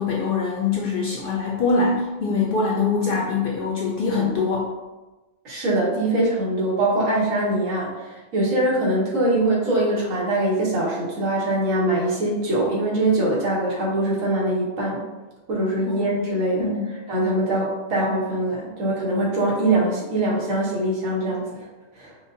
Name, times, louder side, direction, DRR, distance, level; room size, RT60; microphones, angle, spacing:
voice 1, 0.0-4.7 15.8-15.9 16.6-16.8, left 4 dB, 60° left, -3 dB, 0.6 m, -23 dB
voice 2, 5.4-15.1 15.5-16.7 17.1-21.6 21.9-22.1, right 1 dB, 85° right, -4 dB, 1.3 m, -23 dB
4.8 x 2.1 x 2.5 m, 1.2 s
omnidirectional pair, 1.3 m